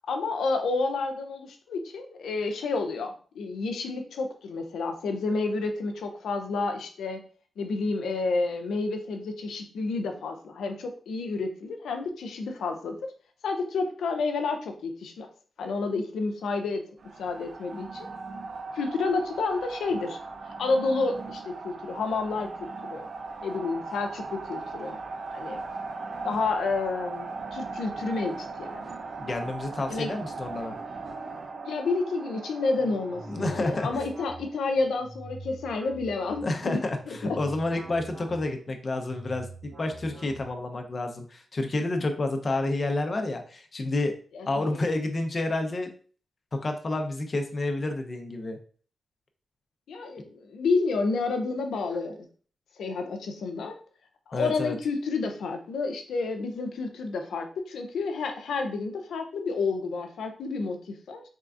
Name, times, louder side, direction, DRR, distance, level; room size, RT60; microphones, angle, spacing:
voice 1, 0.1-7.2 7.6-13.0 13.4-15.3 15.6-16.8 17.2-18.1 18.7-20.2 20.6-23.1 23.4-25.0 25.3-25.6 26.2-28.9 29.9-30.1 31.6-36.8 37.1-37.4 44.3-44.8 49.9-52.3 52.8-53.8 54.3-61.2, left 3 dB, 85° left, 5 dB, 0.5 m, -30 dB
sound 1, 17.0-34.7, right 3 dB, 65° right, 0.5 m, -39 dB
voice 2, 29.2-30.8 33.3-33.9 36.4-37.0 37.2-44.1 44.5-45.9 46.5-48.6 54.3-54.8, left 2 dB, 45° left, 5 dB, 0.7 m, -29 dB
sound 2, 32.7-40.8, right 2 dB, 35° right, 1.2 m, -45 dB
3.7 x 3.3 x 2.5 m, 0.42 s
cardioid pair, 60°, 0 cm